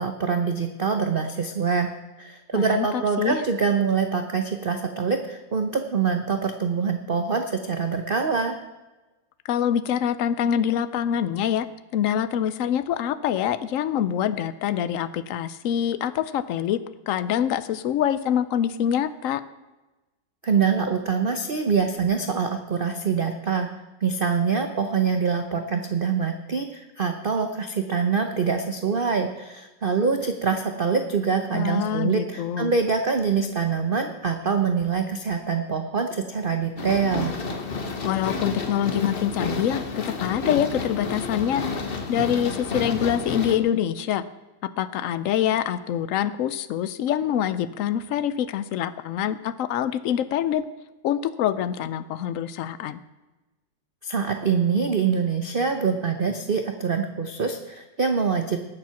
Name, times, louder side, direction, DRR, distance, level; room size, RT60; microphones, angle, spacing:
voice 1, 0.0-8.6 20.4-23.7 24.0-37.3 54.0-58.7, right 5 dB, 50° right, 6 dB, 0.6 m, -25 dB
voice 2, 2.5-3.4 9.5-11.7 11.9-16.8 17.1-19.4 31.5-32.7 38.0-41.6 42.1-44.2 44.8-50.6 51.0-53.0, left 10 dB, 80° left, 14 dB, 0.7 m, -25 dB
sound 1, 36.8-43.6, left 4 dB, 35° left, 1.1 m, -30 dB
18.5 x 7.5 x 5.8 m, 1.1 s
omnidirectional pair, 2.0 m